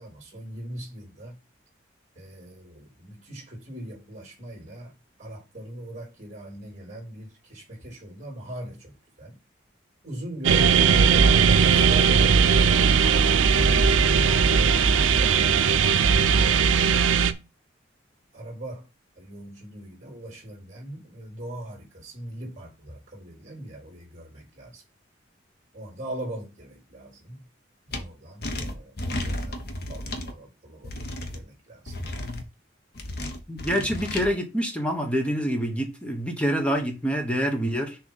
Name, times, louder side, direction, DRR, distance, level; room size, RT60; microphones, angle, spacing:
voice 1, 0.0-1.4 2.2-4.9 5.2-9.4 10.0-14.1 18.3-18.9 19.2-24.8 25.7-27.5 27.9-31.0 31.3-31.9, right 1 dB, 40° right, 3.5 m, -41 dB
sound 1, 10.4-17.3, right 6 dB, 80° right, 0.5 m, -19 dB
sound 2, 27.9-28.0 28.4-30.3 30.8-31.4 31.9-32.4 33.0-34.3, left 1 dB, 55° left, 1.0 m, -33 dB
voice 2, 33.5-38.0, equal, 5° left, 1.1 m, -26 dB
6.4 x 3.2 x 5.5 m
head